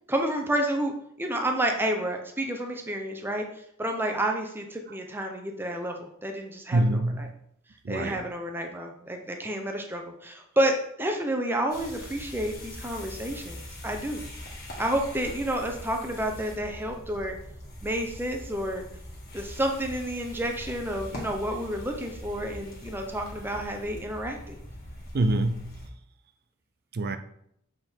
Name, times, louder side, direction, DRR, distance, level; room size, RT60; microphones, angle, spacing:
voice 1, 0.1-3.5 3.8-7.3 7.9-14.2 14.8-17.4 17.8-18.9 19.3-24.6, right 1 dB, 10° right, 0.7 m, -30 dB
voice 2, 6.7-7.3 7.8-8.2 25.1-25.8 26.9-27.2, right 1 dB, 50° right, 0.4 m, -25 dB
sound 1, 11.7-25.9, left 1 dB, 50° left, 1.7 m, -42 dB
7.5 x 3.7 x 4.5 m
head